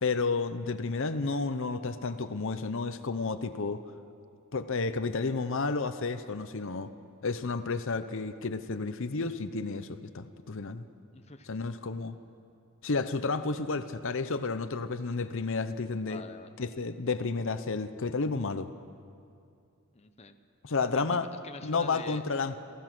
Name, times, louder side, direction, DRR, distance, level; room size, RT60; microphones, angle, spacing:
voice 1, 0.0-3.8 4.5-6.9 7.2-10.9 11.5-12.2 12.8-16.2 16.6-18.7 20.6-21.3 21.6-22.6, left 4 dB, 60° left, 11 dB, 0.7 m, -31 dB
voice 2, 11.1-11.5 16.1-16.6 19.9-20.3 20.9-22.2, left 4 dB, 30° left, 7 dB, 0.7 m, -46 dB
28.0 x 16.0 x 6.1 m, 2.5 s
head